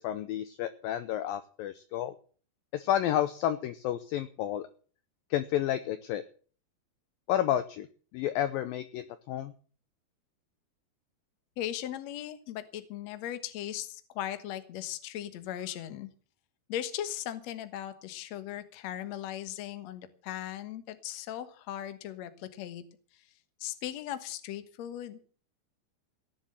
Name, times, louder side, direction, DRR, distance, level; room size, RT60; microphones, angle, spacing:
voice 1, 0.0-2.1 2.7-4.7 5.3-6.2 7.3-7.9 8.1-9.5, left 11 dB, 80° left, 12 dB, 2.0 m, -30 dB
voice 2, 11.6-16.1 16.7-22.8 23.1-23.2 23.6-25.3, left 11 dB, 65° left, 11 dB, 1.7 m, -38 dB
17.5 x 7.3 x 7.8 m, 0.42 s
omnidirectional pair, 5.0 m